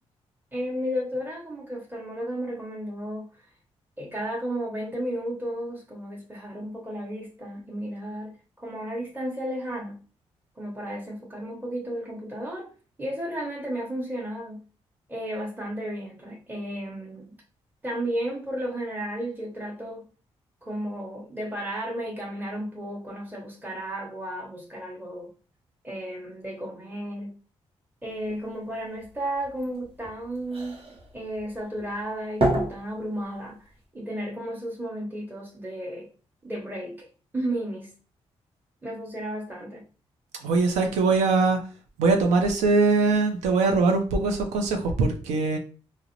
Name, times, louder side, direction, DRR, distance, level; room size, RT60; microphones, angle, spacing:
voice 1, 0.5-3.2 4.0-8.3 8.6-9.9 10.6-12.7 13.0-14.6 15.1-17.3 17.8-20.0 20.6-25.3 25.8-27.3 28.0-30.9 31.1-33.7 33.9-36.1 36.4-37.0 37.3-37.9 38.8-39.8, right 1 dB, 15° right, 0.9 m, -33 dB
sound 1, 28.0-33.8, right 1 dB, 55° right, 0.9 m, -32 dB
voice 2, 40.4-41.6 42.0-45.6, right 3 dB, 90° right, 0.5 m, -22 dB
2.4 x 2.0 x 2.9 m
supercardioid pair, 60°, 12 cm